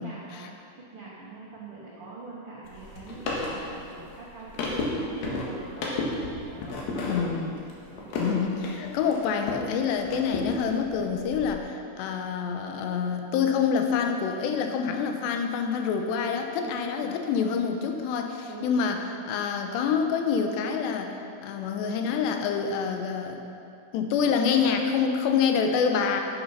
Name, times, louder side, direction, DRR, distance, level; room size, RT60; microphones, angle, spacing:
voice 1, 0.0-6.0 6.5-7.1 7.9-8.2 16.6-17.2 18.5-18.7, right 3 dB, 80° right, -6 dB, 1.2 m, -43 dB
sound 1, 2.6-9.7 10.0-11.5, left 2 dB, 65° left, 3.1 m, -33 dB
voice 2, 7.0-7.6 8.2-21.1 21.4-23.4 23.9-26.2, left 6 dB, 90° left, 4 dB, 3.0 m, -27 dB
9.7 x 9.2 x 5.7 m, 2.6 s
omnidirectional pair, 4.8 m